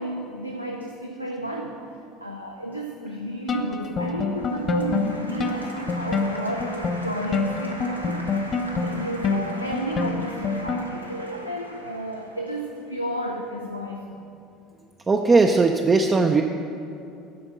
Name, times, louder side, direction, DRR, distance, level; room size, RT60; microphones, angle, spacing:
voice 1, 0.0-1.8 2.2-8.3 8.8-14.2, right 1 dB, 90° left, 1 dB, 0.4 m, -32 dB
sound 1, 3.5-11.1, left 3 dB, 35° left, 0.6 m, -28 dB
Applause, 4.3-13.4, equal, 90° right, 0.6 m, -41 dB
voice 2, 15.1-16.4, right 3 dB, 25° right, 4 dB, 0.4 m, -18 dB
9.7 x 4.3 x 6.4 m, 2.7 s
figure-of-eight pair, 65°, 0 cm